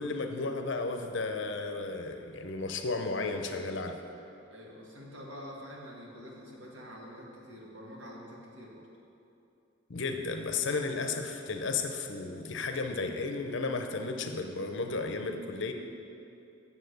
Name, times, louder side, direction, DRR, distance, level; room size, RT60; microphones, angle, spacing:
voice 1, 0.0-4.0 9.9-15.7, left 3 dB, 60° left, 5 dB, 0.7 m, -33 dB
voice 2, 4.5-8.9, equal, 60° right, -3 dB, 1.9 m, -46 dB
8.2 x 7.2 x 6.7 m, 2.8 s
head